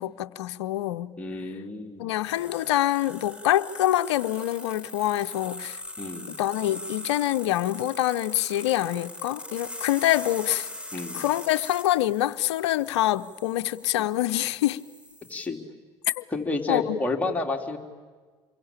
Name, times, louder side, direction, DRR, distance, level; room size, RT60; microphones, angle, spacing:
voice 1, 0.0-1.1 2.0-5.8 6.4-10.7 11.1-14.8 16.1-16.2 16.7-17.0, left 14 dB, 75° left, 13 dB, 0.7 m, -25 dB
voice 2, 1.2-2.1 6.0-6.4 10.9-11.2 15.3-15.6 16.3-17.8, left 3 dB, 10° left, 0 dB, 3.5 m, -30 dB
sound 1, 2.2-15.5, left 1 dB, 5° right, 4.2 m, -41 dB
27.5 x 23.0 x 8.8 m, 1.4 s
hypercardioid pair, 70°, 14 cm